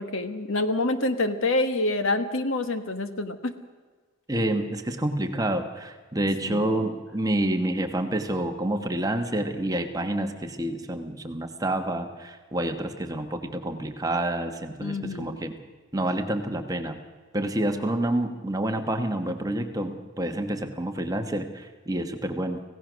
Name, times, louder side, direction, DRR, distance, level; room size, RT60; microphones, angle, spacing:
voice 1, 0.0-3.5 6.5-6.8 14.8-15.3, left 2 dB, 70° left, 9 dB, 1.4 m, -27 dB
voice 2, 4.3-15.6 15.9-17.0 17.3-22.6, right 1 dB, 15° right, 5 dB, 1.3 m, -28 dB
26.0 x 16.5 x 6.3 m, 1.4 s
head